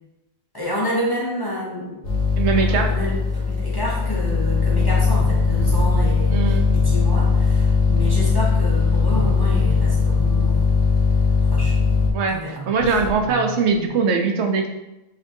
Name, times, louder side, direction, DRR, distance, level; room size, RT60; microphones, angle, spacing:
voice 1, 0.5-2.0 2.6-10.8 11.4-11.8 12.3-13.0, left 1 dB, 25° left, -5 dB, 0.6 m, -29 dB
sound 1, 2.0-12.1, left 4 dB, 85° left, 1.2 m, -19 dB
voice 2, 2.4-2.9 6.3-6.7 12.1-14.7, right 5 dB, 85° right, 3 dB, 0.9 m, -21 dB
sound 2, 4.0-4.2 5.0-6.2 7.4-7.5 8.6-10.4 12.5-14.0, right 5 dB, 55° right, 0.6 m, -33 dB
5.3 x 2.5 x 2.6 m, 0.94 s
omnidirectional pair, 1.1 m